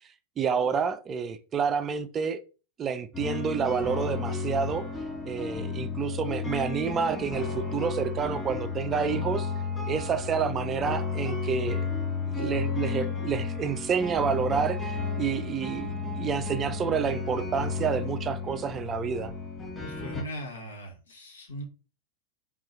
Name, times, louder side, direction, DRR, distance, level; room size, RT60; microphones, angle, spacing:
voice 1, 0.4-2.4 2.8-4.8 5.3-9.5 9.9-11.8 12.3-19.3, right 6 dB, 25° right, 0.4 m, -29 dB
sound 1, 3.1-20.2, left 4 dB, 15° left, 2.7 m, -33 dB
voice 2, 19.8-21.6, equal, 70° left, 1.3 m, -39 dB
4.5 x 3.7 x 3.0 m
figure-of-eight pair, 90°, 0 cm